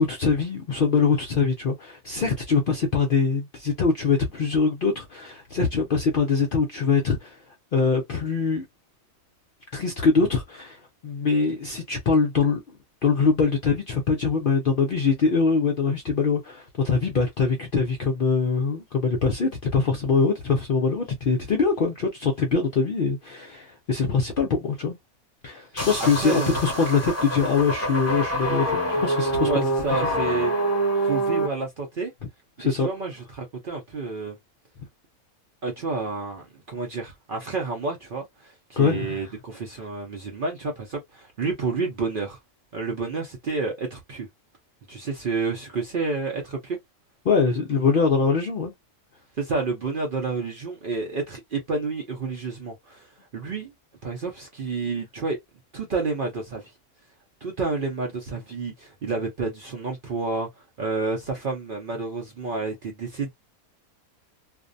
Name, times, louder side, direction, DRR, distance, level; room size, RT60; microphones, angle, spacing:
voice 1, 0.0-7.4 7.7-8.6 9.7-12.6 13.0-24.9 25.4-29.7 31.0-31.1 32.6-32.9 38.8-39.3 47.2-48.7, left 4 dB, 60° left, 0.5 m, -23 dB
sound 1, 25.8-31.5, right 1 dB, 15° left, 0.8 m, -26 dB
voice 2, 26.0-26.6 29.4-30.5 31.0-32.1 32.8-34.3 35.6-42.4 42.7-44.3 44.9-46.8 49.4-53.7 54.0-55.4 55.7-56.7 57.4-60.5 60.8-63.3, right 4 dB, 55° right, 0.6 m, -29 dB
2.5 x 2.1 x 2.5 m
omnidirectional pair, 1.5 m